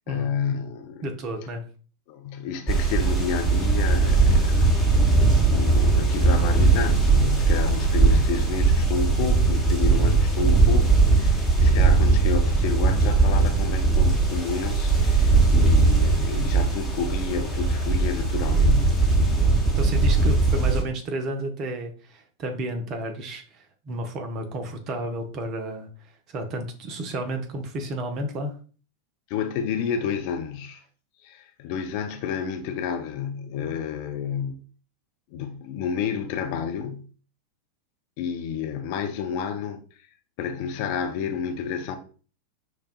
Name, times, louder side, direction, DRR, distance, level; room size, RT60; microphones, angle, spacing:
voice 1, 0.1-1.1 2.1-4.7 5.0-5.2 5.5-19.0 29.3-30.8 31.2-34.6 35.3-37.1 38.2-39.8 40.4-42.0, left 7 dB, 45° left, 0.4 m, -30 dB
voice 2, 1.0-1.7 9.9-10.2 19.3-28.6, right 1 dB, 35° right, 0.6 m, -32 dB
sound 1, 2.7-20.8, right 3 dB, ahead, 1.0 m, -20 dB
4.9 x 2.2 x 2.3 m
figure-of-eight pair, 90°, 0 cm